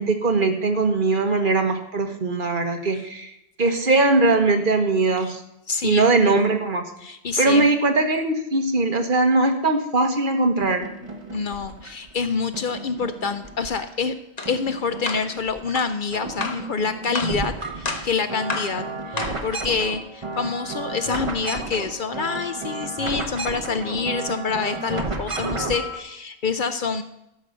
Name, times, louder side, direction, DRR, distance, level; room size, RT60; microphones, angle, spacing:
voice 1, 0.0-3.3 3.6-5.4 5.8-6.8 7.4-10.9, right 3 dB, 50° right, 5 dB, 1.4 m, -20 dB
voice 2, 5.7-6.0 7.0-7.7 11.3-14.1 14.5-27.0, left 5 dB, 55° left, 10 dB, 0.7 m, -27 dB
sound 1, 10.6-12.1 12.5-14.1 14.4-15.7 16.0-26.0, right 2 dB, 30° right, 1.2 m, -33 dB
sound 2, 14.4-14.5 15.1-15.3 15.7-15.9 16.4-16.7 17.1-17.4 17.8-18.1 18.5-18.8 19.2-19.4, left 3 dB, 40° left, 1.3 m, -30 dB
13.0 x 5.7 x 6.5 m, 0.84 s
omnidirectional pair, 1.1 m